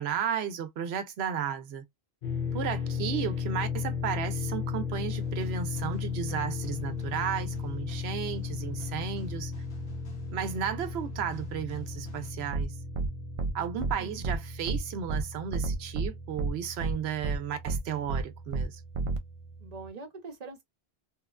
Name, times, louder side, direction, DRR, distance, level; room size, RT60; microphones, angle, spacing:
voice 1, 0.0-1.8 2.5-9.5 10.3-12.7 13.5-18.8, right 8 dB, 90° right, 0.9 m, -34 dB
sound 1, 2.2-19.9, left 5 dB, 50° left, 0.9 m, -36 dB
sound 2, 5.1-12.3, right 1 dB, 90° left, 1.3 m, -50 dB
sound 3, 12.5-12.6 12.9-13.1 13.4-13.5 13.8-13.9 14.2-14.4 14.7-14.8 15.1-15.2 15.5-16.1 16.4-16.5 16.8-16.9 17.2-17.4 17.7-17.8 18.1-18.2 18.5-18.6 18.9-19.2, right 3 dB, 60° right, 0.3 m, -29 dB
voice 2, 13.7-14.2 19.6-20.6, right 4 dB, 45° right, 0.8 m, -44 dB
3.0 x 2.2 x 2.3 m
omnidirectional pair, 1.0 m